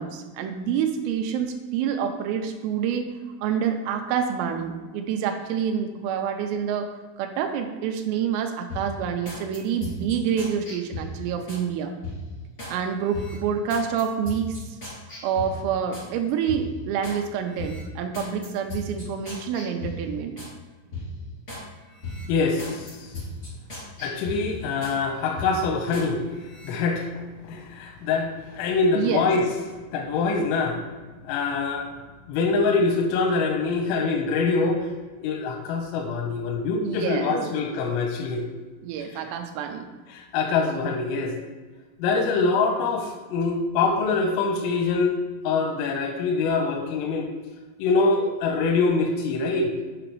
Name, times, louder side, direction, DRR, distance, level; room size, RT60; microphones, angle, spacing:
voice 1, 0.0-3.1 3.4-6.9 7.2-11.9 12.7-14.8 15.2-20.3 28.9-29.3 36.8-37.4 38.8-39.9, right 7 dB, 85° right, 4 dB, 3.2 m, -27 dB
sound 1, 8.7-11.6 12.0-12.8 13.1-16.1 16.5-17.2 17.6-20.5 20.9-21.7 22.0-25.0 25.4-26.1 26.4-26.7, left 2 dB, 50° left, 0.7 m, -37 dB
voice 2, 22.3-23.1 24.0-26.2 26.6-29.4 29.9-30.8 31.2-31.9 32.3-34.9 35.2-38.4 39.0-39.2 40.1-41.3 42.0-45.2 45.4-47.3 47.8-49.7, left 4 dB, 85° left, 1 dB, 3.4 m, -24 dB
8.6 x 5.0 x 4.6 m, 1.3 s
omnidirectional pair, 5.9 m